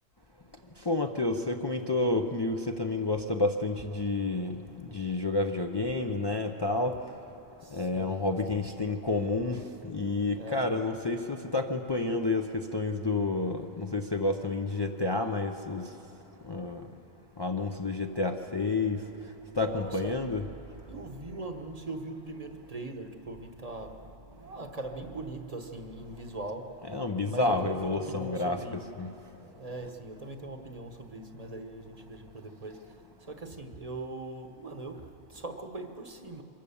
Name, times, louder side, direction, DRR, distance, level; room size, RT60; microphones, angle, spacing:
voice 1, 0.9-4.6 4.9-6.9 7.7-15.9 16.5-16.8 17.4-19.0 19.6-20.4 26.9-28.6 29.0-29.1, left 2 dB, 25° left, 0.6 m, -29 dB
voice 2, 7.6-9.1 10.3-10.7 19.4-20.5 20.7-27.0 27.2-28.9 29.4-36.4, right 2 dB, 35° right, 1.2 m, -41 dB
24.5 x 15.0 x 7.0 m
omnidirectional pair, 1.1 m